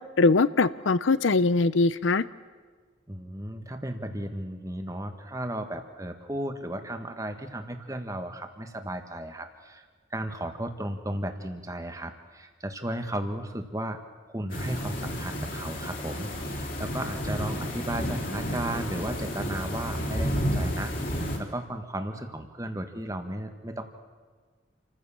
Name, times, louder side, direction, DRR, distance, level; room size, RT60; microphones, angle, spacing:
voice 1, 0.2-2.2, left 3 dB, 75° left, 16 dB, 0.6 m, -22 dB
voice 2, 3.1-14.0 14.3-23.8, right 1 dB, 15° right, 7 dB, 1.5 m, -35 dB
sound 1, 14.5-21.4, equal, 45° left, 3.5 m, -31 dB
28.5 x 15.0 x 7.2 m, 1.5 s
head